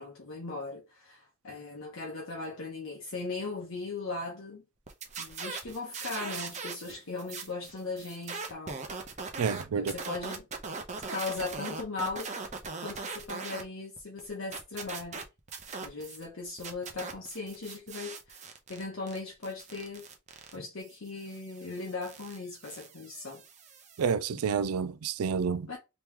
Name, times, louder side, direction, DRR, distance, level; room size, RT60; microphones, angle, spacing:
voice 1, 0.0-4.6 5.2-8.8 9.8-10.5 11.1-12.3 12.8-15.2 15.8-20.1 20.5-23.4 25.7-25.8, left 3 dB, 60° left, 0.9 m, -38 dB
sound 1, 4.9-6.9 7.2-13.6 14.0-16.2 16.6-24.1, right 4 dB, 30° right, 0.7 m, -41 dB
voice 2, 9.4-9.9 24.0-25.7, right 6 dB, 80° right, 0.4 m, -29 dB
3.0 x 2.9 x 3.5 m
head